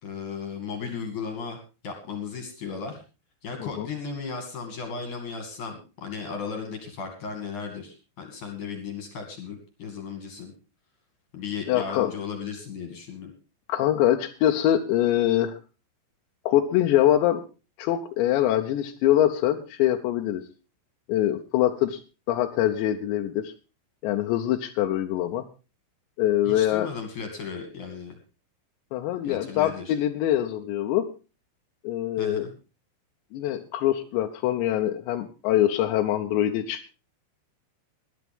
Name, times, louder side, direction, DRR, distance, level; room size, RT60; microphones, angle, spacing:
voice 1, 0.0-1.6 1.8-3.0 3.4-10.5 11.3-13.3 26.5-28.1 29.2-29.9 32.2-32.5, left 5 dB, 50° left, 5 dB, 3.1 m, -35 dB
voice 2, 11.7-12.1 13.7-15.6 16.5-17.4 17.8-20.4 21.1-22.0 22.3-23.5 24.0-25.4 26.2-26.9 28.9-31.1 31.8-32.5 33.3-36.9, left 12 dB, 75° left, 3 dB, 2.9 m, -24 dB
20.0 x 11.5 x 3.5 m, 0.31 s
omnidirectional pair, 5.6 m